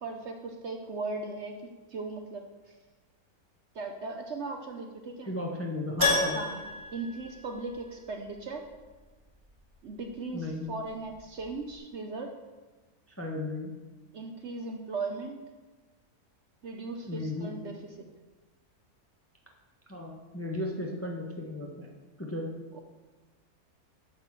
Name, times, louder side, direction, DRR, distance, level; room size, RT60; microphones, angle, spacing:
voice 1, 0.0-1.6 1.9-2.4 3.7-5.3 6.3-8.6 9.8-12.4 14.1-15.5 16.6-17.8 22.7-22.8, right 3 dB, 55° right, 4 dB, 0.9 m, -38 dB
voice 2, 5.3-6.4 10.3-10.7 13.1-13.7 17.1-17.5 19.9-21.9 22.2-22.5, left 2 dB, 10° left, -1 dB, 0.7 m, -35 dB
Keyboard (musical), 6.0-8.0 8.3-8.4 11.1-11.2 11.4-11.5, left 2 dB, 15° right, 2.3 m, -30 dB
9.2 x 4.1 x 7.2 m, 1.2 s
omnidirectional pair, 1.6 m